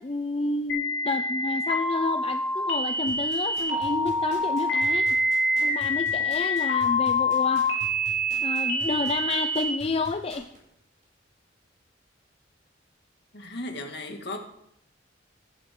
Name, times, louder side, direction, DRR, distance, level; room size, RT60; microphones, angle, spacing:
voice 1, 0.0-5.2 5.6-7.7 8.4-10.5, left 3 dB, 30° left, 8 dB, 0.5 m, -30 dB
sound 1, 0.7-9.7, left 1 dB, 85° left, 3.6 m, -26 dB
sound 2, 3.1-10.6 11.0-11.1, right 1 dB, 40° right, 6.6 m, -44 dB
voice 2, 13.3-14.4, left 2 dB, 60° left, 3 dB, 2.2 m, -35 dB
14.5 x 12.5 x 3.8 m, 0.79 s
head